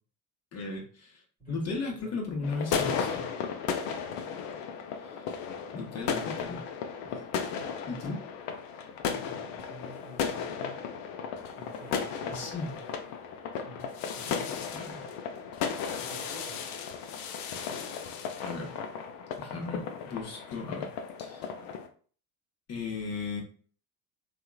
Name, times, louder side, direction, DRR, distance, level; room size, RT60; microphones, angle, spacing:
voice 1, 0.5-1.2 1.5-3.3 5.0-5.3 5.7-6.7 7.0-7.2 7.9-8.2 12.2-12.8 14.5-15.1 18.4-18.8 19.4-20.9 21.2-21.5 22.7-23.4, left 3 dB, 30° left, 1 dB, 1.0 m, -36 dB
voice 2, 1.4-2.2 7.1-7.8 9.0-10.9 11.6-12.4 13.5-14.6 16.0-16.7, equal, 10° right, -3 dB, 1.4 m, -49 dB
sound 1, 2.4-21.9, left 6 dB, 50° left, 0.5 m, -35 dB
2.8 x 2.4 x 2.2 m, 0.43 s
hypercardioid pair, 65°, 49 cm